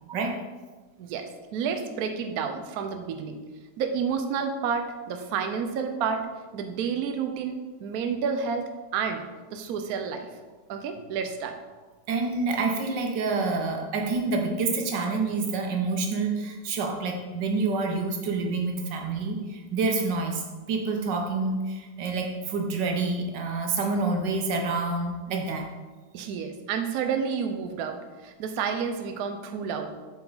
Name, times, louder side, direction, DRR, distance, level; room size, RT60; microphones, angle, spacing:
voice 1, 1.0-3.4 3.8-6.3 6.5-9.3 9.5-10.3 10.7-11.6 26.1-30.0, right 6 dB, 70° right, 6 dB, 1.0 m, -30 dB
voice 2, 12.1-20.4 20.7-25.7, right 3 dB, 90° right, 2 dB, 1.6 m, -27 dB
7.3 x 4.5 x 3.9 m, 1.3 s
omnidirectional pair, 1.9 m